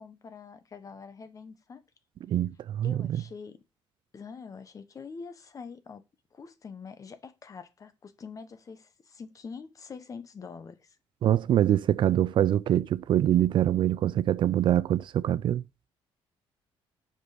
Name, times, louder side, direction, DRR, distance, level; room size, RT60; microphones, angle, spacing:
voice 1, 0.0-1.8 2.8-3.6 4.1-6.0 6.3-11.0, left 5 dB, 35° left, 1.0 m, -45 dB
voice 2, 2.3-3.2 11.2-15.6, right 11 dB, 55° right, 0.4 m, -24 dB
6.1 x 5.0 x 5.0 m
cardioid pair, 120°, 10 cm